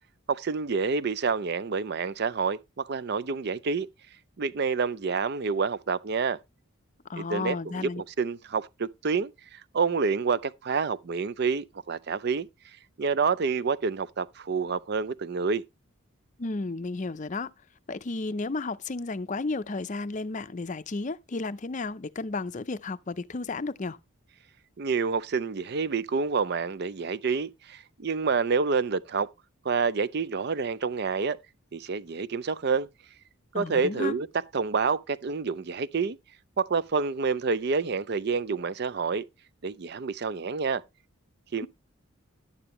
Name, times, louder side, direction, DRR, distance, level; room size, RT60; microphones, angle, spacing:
voice 1, 0.3-3.9 4.4-6.4 7.2-12.5 13.0-15.6 24.8-29.3 29.6-31.4 31.7-32.9 33.5-34.3 34.5-36.2 36.6-39.3 39.6-40.8 41.5-41.7, right 5 dB, 50° right, 0.5 m, -28 dB
voice 2, 7.1-8.0 16.4-17.5 17.9-24.0 33.5-34.1, left 3 dB, 35° left, 0.5 m, -33 dB
11.0 x 8.8 x 3.1 m
head